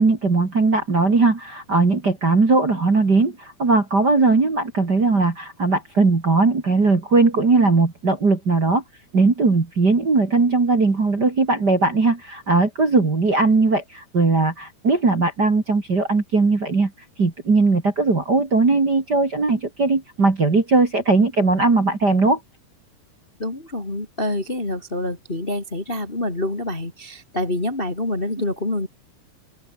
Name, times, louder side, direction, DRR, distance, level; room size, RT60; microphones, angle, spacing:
voice 1, 0.0-8.8 9.1-16.9 17.2-22.4, right 3 dB, 30° right, 2.9 m, -19 dB
voice 2, 23.4-28.9, left 1 dB, 15° left, 2.5 m, -26 dB
open air
omnidirectional pair, 4.5 m